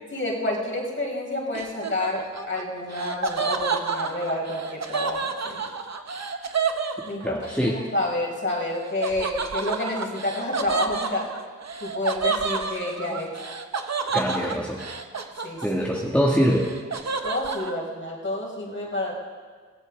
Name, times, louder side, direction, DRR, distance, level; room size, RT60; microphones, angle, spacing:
voice 1, 0.1-5.6 7.0-11.3 11.8-13.3 15.4-15.8 17.2-19.1, left 1 dB, 40° left, -2 dB, 4.7 m, -29 dB
Laughter, 1.5-7.6 9.0-16.0 16.3-17.7, right 5 dB, 60° right, 1.1 m, -30 dB
voice 2, 7.2-7.8 14.1-14.8 15.6-16.6, equal, 5° left, -3 dB, 2.0 m, -23 dB
23.0 x 15.5 x 3.7 m, 1.6 s
cardioid pair, 55°, 30 cm